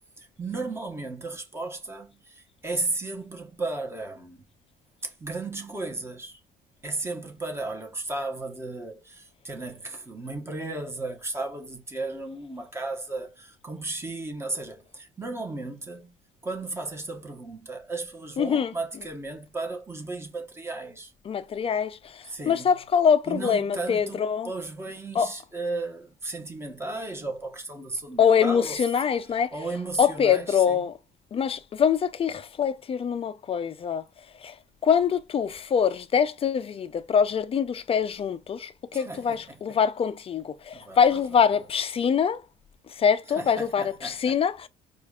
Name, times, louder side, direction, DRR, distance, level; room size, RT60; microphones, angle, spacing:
voice 1, 0.2-4.4 5.0-6.4 6.8-16.1 16.4-21.1 22.3-22.8 23.3-28.8 29.5-30.8 38.9-39.8 40.7-41.7 43.3-44.4, right 2 dB, 15° right, 1.1 m, -35 dB
voice 2, 18.4-18.7 21.3-24.5 25.1-25.3 28.2-29.5 30.0-31.0 31.3-34.0 34.4-34.5 34.8-42.4 43.0-44.7, left 7 dB, 35° left, 0.5 m, -24 dB
4.7 x 2.5 x 2.4 m
cardioid pair, 110°, 17 cm